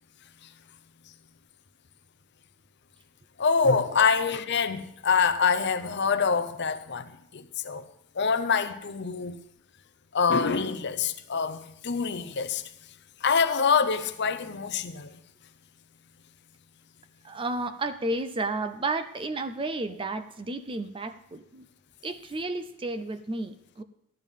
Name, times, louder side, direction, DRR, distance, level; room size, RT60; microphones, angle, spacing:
voice 1, 3.4-7.8 8.2-9.4 10.1-12.6 13.2-15.1, left 5 dB, 50° left, 0.6 m, -25 dB
voice 2, 17.2-21.7 22.0-23.8, right 2 dB, 20° right, 0.4 m, -32 dB
14.5 x 11.0 x 3.6 m
head